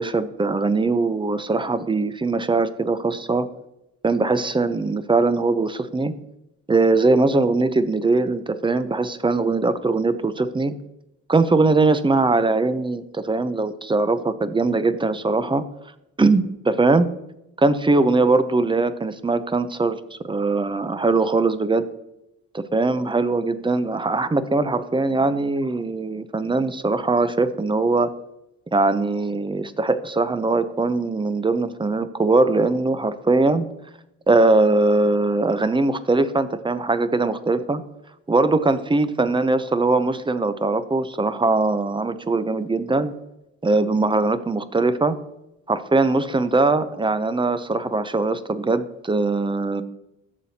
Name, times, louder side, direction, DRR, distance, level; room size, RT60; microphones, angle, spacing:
voice 1, 0.0-3.5 4.0-6.1 6.7-10.7 11.3-15.6 16.2-17.1 17.6-21.9 22.5-28.1 28.7-33.7 34.3-37.8 38.3-43.1 43.6-45.2 45.7-49.8, right 3 dB, 15° right, 12 dB, 0.5 m, -21 dB
11.5 x 6.9 x 2.8 m, 0.88 s
cardioid pair, 90°, 30 cm